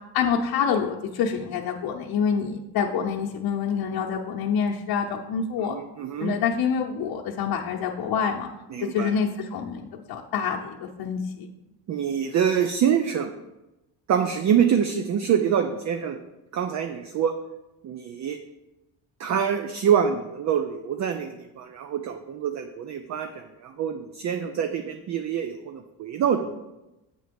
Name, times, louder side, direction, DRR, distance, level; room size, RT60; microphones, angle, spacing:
voice 1, 0.1-5.7 6.2-8.5 8.8-11.5, left 6 dB, 60° left, -2 dB, 0.8 m, -27 dB
voice 2, 5.6-6.3 8.7-9.1 11.9-13.3 14.1-16.2 16.5-17.4 17.8-18.4 19.2-26.5, right 8 dB, 45° right, 7 dB, 0.5 m, -25 dB
7.9 x 3.8 x 5.2 m, 0.98 s
cardioid pair, 100°, 41 cm